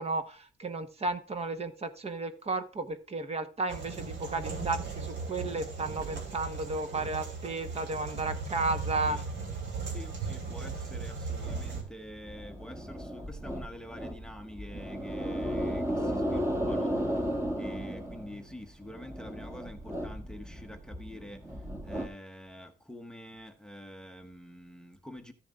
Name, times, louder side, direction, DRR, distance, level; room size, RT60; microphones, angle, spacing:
voice 1, 0.0-9.2, right 3 dB, 30° right, 1.0 m, -33 dB
sound 1, 3.7-11.8, right 4 dB, 75° right, 2.9 m, -37 dB
voice 2, 9.9-17.2 17.6-21.4 21.8-25.3, equal, 5° left, 0.8 m, -46 dB
sound 2, 11.5-22.1, equal, 15° right, 1.4 m, -35 dB
13.5 x 7.2 x 2.4 m
cardioid pair, 145°, 19 cm